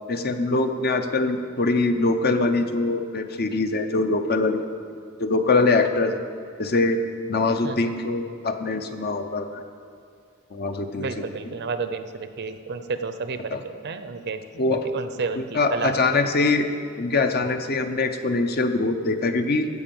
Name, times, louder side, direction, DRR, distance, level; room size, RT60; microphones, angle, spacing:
voice 1, 0.1-4.7 5.2-6.2 6.6-7.0 7.3-9.6 10.5-11.1 13.5-13.6 14.6-14.8 15.3-16.7 17.0-19.7, left 3 dB, 50° left, 7 dB, 0.7 m, -23 dB
voice 2, 11.0-14.4 14.7-16.2, right 4 dB, 55° right, 9 dB, 0.7 m, -31 dB
15.0 x 5.3 x 7.1 m, 2.5 s
head